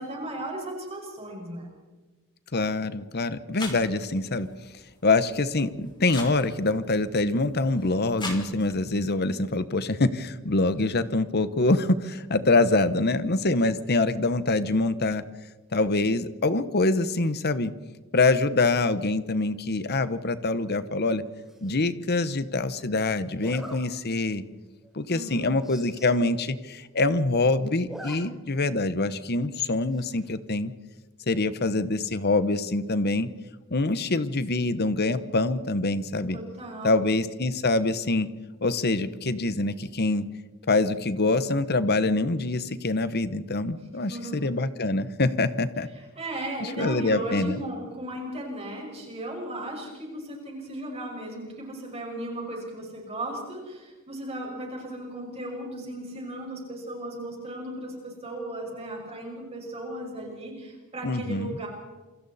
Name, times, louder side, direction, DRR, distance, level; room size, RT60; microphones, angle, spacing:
voice 1, 0.0-1.7 25.1-25.6 36.3-37.0 44.1-44.4 46.2-61.7, right 1 dB, 30° right, 0 dB, 5.7 m, -36 dB
voice 2, 2.5-4.5 5.0-15.2 15.7-17.7 18.1-21.2 21.6-24.4 24.9-30.7 31.3-33.3 33.7-36.4 36.8-38.3 38.6-40.2 40.7-45.9 46.6-47.6 61.0-61.6, left 2 dB, 50° left, 13 dB, 1.1 m, -25 dB
sound 1, 3.6-9.0, left 2 dB, 20° left, 3.8 m, -42 dB
Zipper (clothing), 21.5-21.8 23.4-23.8 24.3-24.5 24.8-24.9 25.2-25.3 25.5-26.2 26.5-26.6 26.8-27.3 27.7-28.2 28.5-28.6 29.9-30.3, equal, ahead, 4.4 m, -43 dB
28.0 x 25.5 x 4.3 m, 1.2 s
head